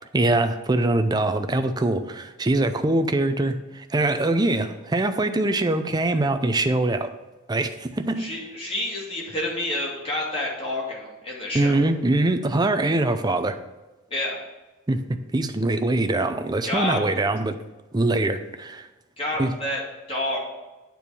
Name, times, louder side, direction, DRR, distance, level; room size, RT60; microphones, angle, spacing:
voice 1, 0.1-7.1 7.5-8.3 11.5-13.6 14.9-17.6 17.9-18.9 19.4-19.5, right 2 dB, 20° right, 8 dB, 0.5 m, -23 dB
voice 2, 8.2-11.8 14.1-14.4 16.6-17.0 19.2-19.8 20.1-20.4, left 1 dB, 25° left, -3 dB, 2.1 m, -28 dB
8.6 x 4.6 x 6.9 m, 1.1 s
head